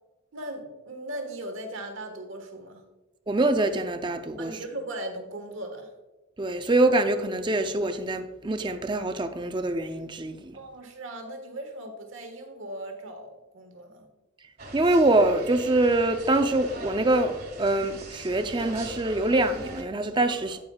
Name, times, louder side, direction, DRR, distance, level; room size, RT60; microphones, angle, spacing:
voice 1, 0.3-2.8 4.4-5.9 10.5-14.1 20.5-20.6, right 1 dB, 70° right, 1.4 m, -38 dB
voice 2, 3.3-4.5 6.4-10.6 14.7-20.6, right 2 dB, 20° right, 0.4 m, -24 dB
sound 1, 14.6-19.8, right 1 dB, 45° right, 1.5 m, -41 dB
9.6 x 8.8 x 2.3 m
head